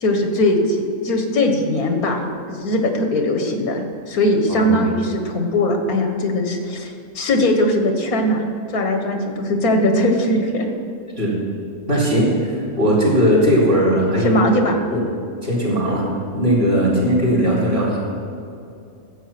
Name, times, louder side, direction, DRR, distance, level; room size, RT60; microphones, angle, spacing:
voice 1, 0.0-2.2 2.5-8.4 8.7-10.7 13.9-14.8 16.8-17.0, left 1 dB, 90° left, 4 dB, 1.9 m, -20 dB
voice 2, 11.9-14.4 14.9-15.0 15.4-16.1 16.3-18.0, equal, 45° right, -5 dB, 4.0 m, -18 dB
13.5 x 8.2 x 5.9 m, 2.5 s
omnidirectional pair, 1.5 m